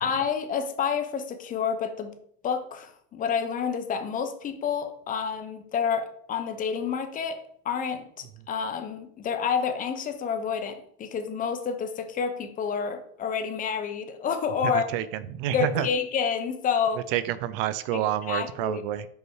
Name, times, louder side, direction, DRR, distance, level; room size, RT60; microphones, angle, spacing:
voice 1, 0.0-2.2 2.4-7.4 7.6-14.9 15.5-17.0 17.9-18.8, left 6 dB, 25° left, 7 dB, 0.8 m, -29 dB
voice 2, 14.6-15.9 17.1-19.1, right 12 dB, 60° right, 15 dB, 0.6 m, -28 dB
5.5 x 4.6 x 4.7 m, 0.64 s
supercardioid pair, 140°, 31 cm